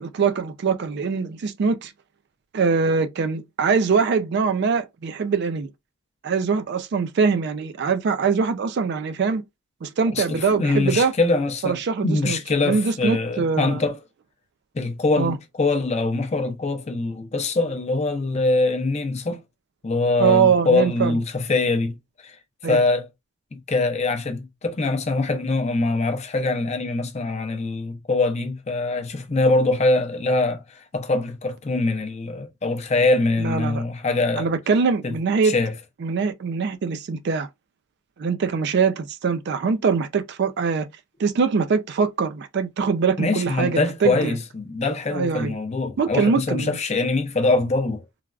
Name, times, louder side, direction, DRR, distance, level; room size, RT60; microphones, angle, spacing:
voice 1, 0.0-1.9 2.5-5.7 6.2-9.4 9.8-11.1 11.6-12.4 12.6-13.8 15.2-15.4 20.2-21.2 22.6-22.8 33.4-33.8 34.4-35.5 36.0-37.5 38.2-40.9 41.2-44.4 45.1-45.5 46.0-46.8, right 5 dB, 50° right, 0.3 m, -23 dB
voice 2, 10.1-14.0 14.7-19.4 19.8-22.0 22.2-22.4 22.7-23.1 23.5-34.5 35.0-35.1 35.4-35.7 43.2-48.0, left 3 dB, 30° left, 0.5 m, -23 dB
3.2 x 2.3 x 2.3 m
head